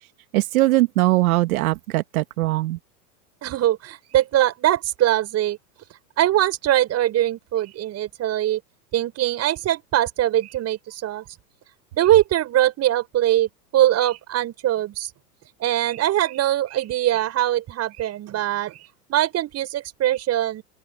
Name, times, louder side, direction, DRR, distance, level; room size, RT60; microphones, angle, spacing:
voice 1, 0.3-2.8, right 17 dB, 65° right, 2.0 m, -20 dB
voice 2, 3.4-5.6 6.2-8.6 8.9-11.2 11.9-15.1 15.6-20.6, right 13 dB, 30° right, 7.1 m, -22 dB
open air
hypercardioid pair, 120°, 47 cm